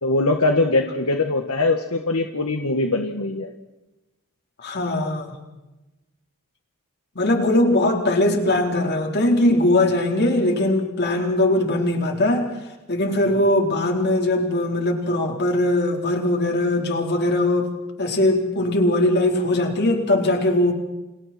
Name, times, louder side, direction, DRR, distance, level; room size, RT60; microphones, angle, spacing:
voice 1, 0.0-3.5, left 2 dB, 75° left, 4 dB, 1.7 m, -22 dB
voice 2, 4.6-5.3 7.1-12.5 12.9-17.7 18.0-20.7, left 1 dB, 50° left, 2 dB, 4.2 m, -20 dB
30.0 x 28.0 x 4.5 m, 1.0 s
head